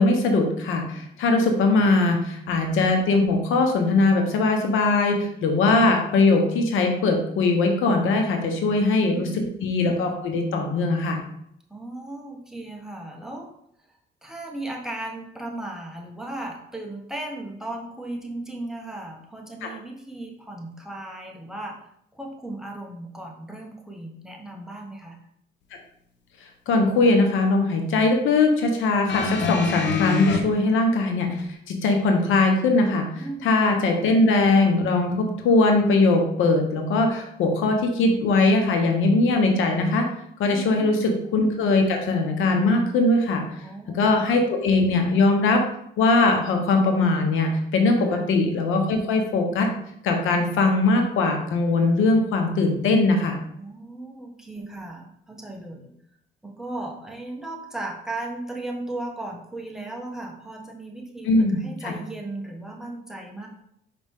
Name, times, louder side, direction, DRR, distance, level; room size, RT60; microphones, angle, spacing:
voice 1, 0.0-11.2 19.6-19.7 26.7-31.4 31.7-33.1 33.4-40.1 40.4-43.4 43.9-45.6 46.0-49.7 50.0-53.4 61.2-61.9, left 3 dB, 85° left, 3 dB, 1.2 m, -21 dB
voice 2, 8.6-9.5 11.7-13.5 14.2-21.9 22.1-25.2 33.2-33.6 40.5-41.1 43.6-44.2 48.0-48.2 53.5-55.9 56.4-63.5, right 2 dB, 5° right, -1 dB, 1.3 m, -36 dB
sound 1, 29.1-30.4 31.4-31.5, left 5 dB, 65° left, 1.0 m, -25 dB
6.0 x 5.0 x 3.6 m, 0.73 s
cardioid pair, 90°, 20 cm